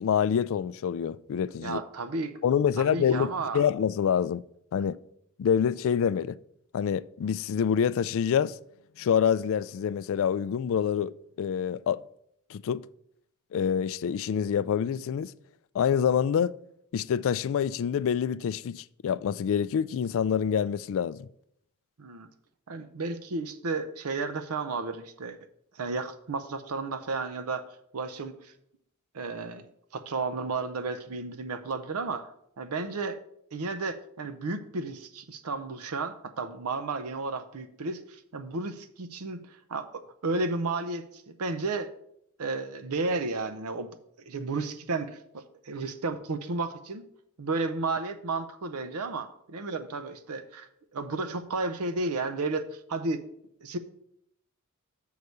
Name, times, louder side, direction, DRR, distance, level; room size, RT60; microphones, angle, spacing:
voice 1, 0.0-1.8 2.4-4.4 4.7-5.0 5.4-6.4 6.7-8.6 9.0-11.1 11.4-12.0 12.5-12.8 13.5-15.3 15.7-16.5 16.9-21.3, left 8 dB, 65° left, 0.3 m, -26 dB
voice 2, 1.6-2.4 2.8-3.7 22.0-22.3 22.7-25.4 25.7-27.6 27.9-28.5 29.1-32.3 32.6-33.2 33.5-41.9 42.4-43.9 44.3-47.0 47.4-53.2 53.6-53.8, right 3 dB, 85° right, 0.6 m, -33 dB
6.6 x 4.7 x 6.9 m
head